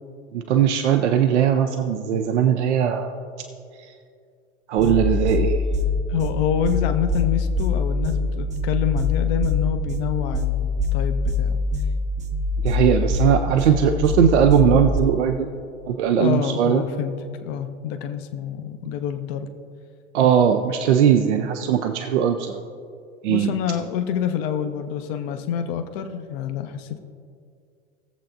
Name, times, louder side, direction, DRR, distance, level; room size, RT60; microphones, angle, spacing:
voice 1, 0.3-3.1 4.7-5.6 12.6-15.5 15.9-16.8 20.1-22.6 23.2-23.5, right 9 dB, 65° right, 6 dB, 0.7 m, -19 dB
sound 1, 4.8-15.0, left 3 dB, 20° right, 0.8 m, -24 dB
voice 2, 6.1-11.6 16.2-17.1 17.4-19.5 23.3-27.0, left 8 dB, 50° left, 7 dB, 0.8 m, -27 dB
19.5 x 7.5 x 2.5 m, 2.3 s
figure-of-eight pair, 80°, 37 cm